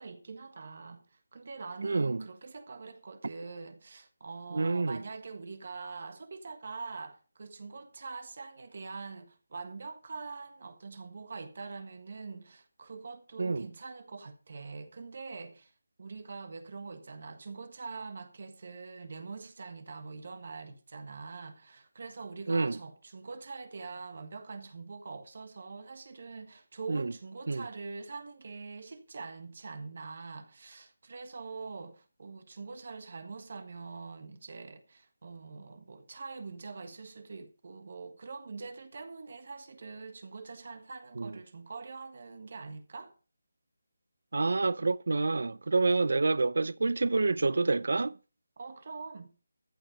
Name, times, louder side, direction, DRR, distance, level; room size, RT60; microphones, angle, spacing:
voice 1, 0.0-15.7 16.0-43.1 48.6-49.3, right 4 dB, 40° right, 1.5 m, -44 dB
voice 2, 1.8-2.2 4.5-5.0 13.4-13.7 22.5-22.8 26.9-27.1 27.5-27.6 41.2-41.3 44.3-48.2, right 3 dB, 60° right, 0.7 m, -28 dB
14.5 x 7.5 x 5.1 m
figure-of-eight pair, 175°, 0 cm